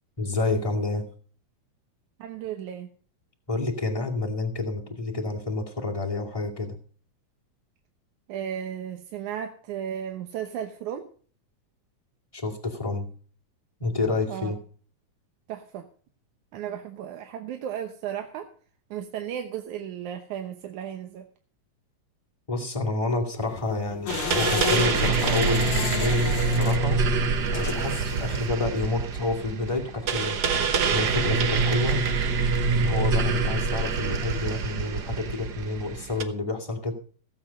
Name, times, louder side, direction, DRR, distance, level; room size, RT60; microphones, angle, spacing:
voice 1, 0.2-1.0 3.5-6.8 12.3-13.1 13.8-14.6 22.5-27.0 27.5-30.6 30.9-32.0 32.7-36.9, left 3 dB, 10° left, -1 dB, 2.1 m, -29 dB
voice 2, 2.2-2.9 8.3-11.0 14.3-14.5 15.5-15.9 16.5-18.5 18.9-21.3, right 9 dB, 85° right, 6 dB, 2.5 m, -34 dB
sound 1, 23.4-28.5, left 13 dB, 80° left, 2.1 m, -33 dB
sound 2, 24.1-36.2, right 4 dB, 55° right, 1.2 m, -25 dB
16.5 x 8.6 x 5.3 m, 0.44 s
omnidirectional pair, 3.3 m